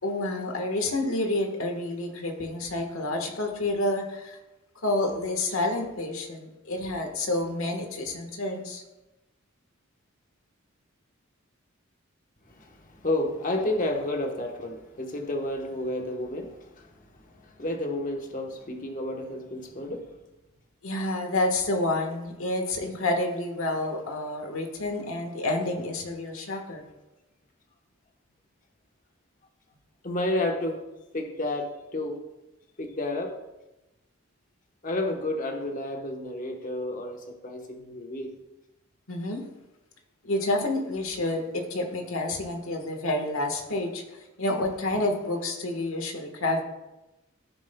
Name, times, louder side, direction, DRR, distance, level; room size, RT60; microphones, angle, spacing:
voice 1, 0.0-4.4 4.8-8.8 20.8-26.8 39.1-39.4 40.2-46.6, left 2 dB, 75° left, 1.4 m, -29 dB
voice 2, 12.5-20.2 30.0-30.8 31.1-32.2 32.8-33.4 34.8-38.4, left 1 dB, 40° left, 1.1 m, -31 dB
14.5 x 7.2 x 2.3 m
head